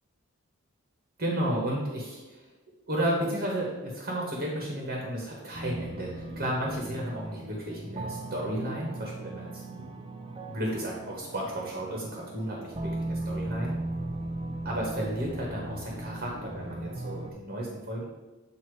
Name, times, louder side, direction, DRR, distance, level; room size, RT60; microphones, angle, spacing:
voice 1, 1.2-2.4 2.9-9.9 10.5-13.8 14.6-18.0, right 1 dB, 50° right, -2 dB, 1.2 m, -33 dB
sound 1, 5.5-17.3, right 2 dB, 25° right, 0.5 m, -37 dB
8.0 x 2.8 x 4.7 m, 1.2 s
head